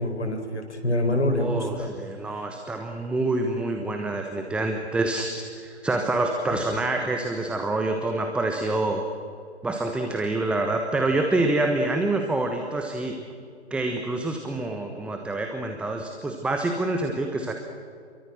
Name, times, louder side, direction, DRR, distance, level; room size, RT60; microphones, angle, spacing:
voice 1, 0.0-1.9 2.3-2.4, left 1 dB, 75° left, 6 dB, 4.6 m, -26 dB
voice 2, 1.4-9.0 9.6-13.1 13.7-17.5, right 2 dB, 5° right, 4 dB, 1.1 m, -26 dB
29.5 x 23.0 x 6.5 m, 2.2 s
figure-of-eight pair, 135°, 34 cm